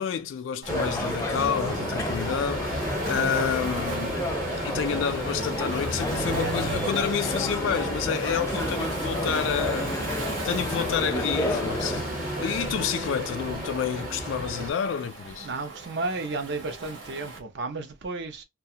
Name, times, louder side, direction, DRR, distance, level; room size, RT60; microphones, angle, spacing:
voice 1, 0.0-4.2 4.6-10.0 10.4-15.5, left 7 dB, 75° left, 0.3 m, -29 dB
Waves surf, 0.6-17.4, right 3 dB, 90° right, 1.1 m, -41 dB
sound 1, 0.7-12.0, left 1 dB, 15° left, 0.5 m, -32 dB
sound 2, 0.7-14.7, equal, 45° right, 1.0 m, -32 dB
voice 2, 15.4-18.4, right 3 dB, 65° right, 0.6 m, -33 dB
2.4 x 2.2 x 2.7 m
head